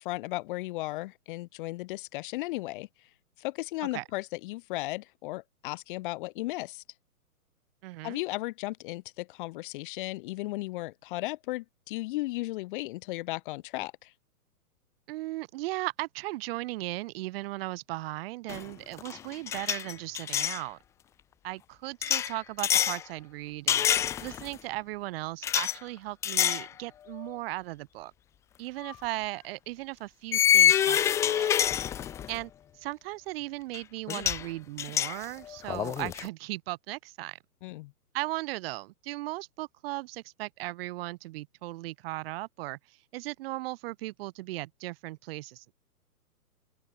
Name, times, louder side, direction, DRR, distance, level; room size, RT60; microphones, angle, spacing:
voice 1, 0.0-3.1 3.4-6.8 8.0-14.1 37.6-37.9, left 20 dB, 35° left, 1.8 m, -35 dB
voice 2, 7.8-8.2 15.1-20.8 21.4-23.9 24.2-28.1 28.6-31.5 32.3-37.4 38.1-45.6, right 19 dB, 40° right, 5.8 m, -37 dB
sound 1, 18.5-18.7 19.0-20.6 22.0-23.0 23.7-24.5 25.4-25.8 26.2-26.7 27.1-27.3 28.8-28.9 30.3-32.4 33.7-33.8 34.1-34.5 34.8-36.3, left 10 dB, 5° left, 0.6 m, -26 dB
open air
hypercardioid pair, 140°, 45 cm